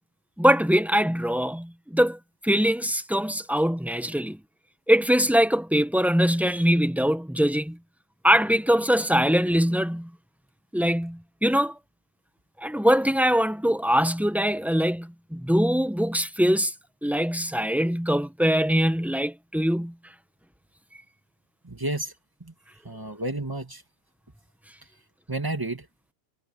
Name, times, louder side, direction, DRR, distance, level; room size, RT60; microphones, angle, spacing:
voice 1, 0.4-4.4 4.9-7.8 8.2-10.1 10.7-11.8 12.6-16.7 17.0-19.9, equal, ahead, 0.8 m, -22 dB
voice 2, 21.6-22.1 22.4-22.5 22.8-23.8 25.3-25.9, right 2 dB, 15° right, 2.1 m, -31 dB
omnidirectional pair, 1.3 m